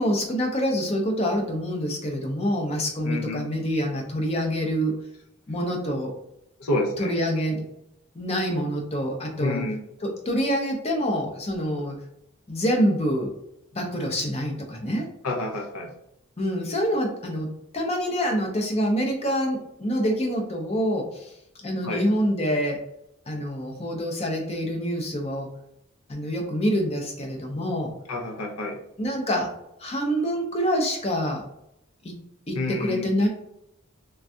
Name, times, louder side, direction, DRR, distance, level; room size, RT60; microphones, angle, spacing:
voice 1, 0.0-4.9 5.5-6.1 7.0-7.6 8.1-9.6 10.0-12.0 12.5-13.3 13.7-15.1 16.4-21.3 21.6-22.8 23.3-25.5 26.1-27.9 29.0-29.5 29.8-31.4 32.0-32.2 32.5-33.3, equal, 30° left, 1 dB, 0.5 m, -26 dB
voice 2, 3.0-3.4 6.6-7.1 9.4-9.8 15.2-15.9 21.8-22.0 28.1-28.8 32.5-33.1, left 2 dB, 90° left, 1 dB, 0.6 m, -28 dB
3.3 x 2.3 x 2.6 m, 0.79 s
head